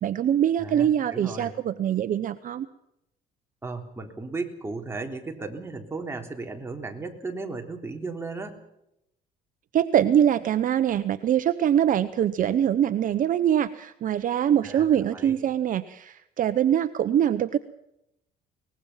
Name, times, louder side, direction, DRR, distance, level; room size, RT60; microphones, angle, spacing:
voice 1, 0.0-2.7 9.7-17.6, right 10 dB, 55° right, 11 dB, 0.9 m, -23 dB
voice 2, 0.6-1.5 3.6-8.6 14.6-15.4, right 3 dB, 15° right, 3 dB, 3.7 m, -35 dB
23.0 x 20.0 x 5.7 m, 0.82 s
cardioid pair, 110°, 17 cm